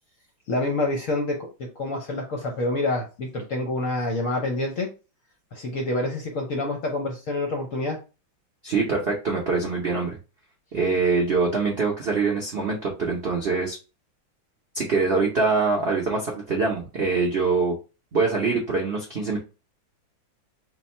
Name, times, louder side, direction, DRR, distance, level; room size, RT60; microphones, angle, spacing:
voice 1, 0.5-4.9 5.5-8.0, left 2 dB, 60° left, 1 dB, 0.8 m, -27 dB
voice 2, 8.6-10.2 10.7-13.8 14.7-17.8 18.1-19.4, right 4 dB, 65° right, -2 dB, 0.6 m, -24 dB
3.5 x 2.2 x 4.2 m, 0.31 s
omnidirectional pair, 2.1 m